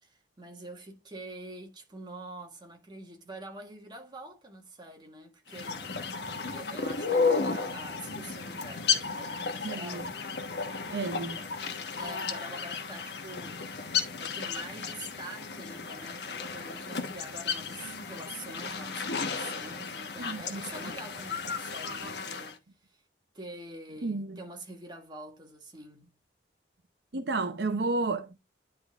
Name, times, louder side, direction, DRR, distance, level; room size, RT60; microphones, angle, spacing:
voice 1, 0.0-5.9 6.5-10.1 11.9-13.7 14.2-23.0 23.3-26.1, right 2 dB, 25° right, 1.6 m, -45 dB
sound 1, 5.5-22.5, left 5 dB, 65° left, 1.2 m, -33 dB
voice 2, 9.6-10.1 10.9-11.4 20.2-20.6 24.0-24.4 27.1-28.4, right 3 dB, 70° right, 0.7 m, -31 dB
10.5 x 3.8 x 3.6 m
head